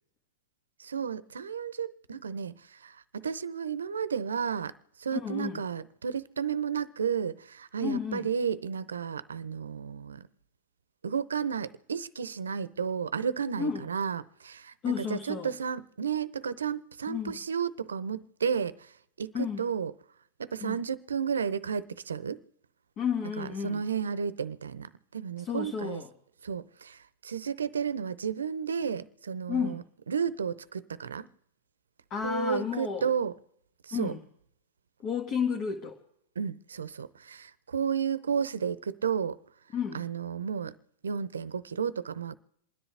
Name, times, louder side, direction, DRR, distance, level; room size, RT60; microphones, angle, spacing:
voice 1, 0.8-4.7 5.0-10.3 11.0-18.9 19.2-19.9 20.4-22.4 23.4-26.0 26.4-31.3 32.2-33.3 33.8-34.1 36.4-39.4 39.9-40.8 41.0-42.3, right 7 dB, 90° right, 0.6 m, -32 dB
voice 2, 5.1-5.6 7.8-8.3 13.6-13.9 14.8-15.5 17.1-17.4 19.3-19.7 20.6-20.8 23.0-23.8 25.4-26.1 29.5-29.8 32.1-33.1 33.9-34.2 35.0-36.0 39.7-40.0, left 7 dB, 40° left, 1.4 m, -32 dB
27.5 x 10.5 x 3.4 m
hypercardioid pair, 110°, 0 cm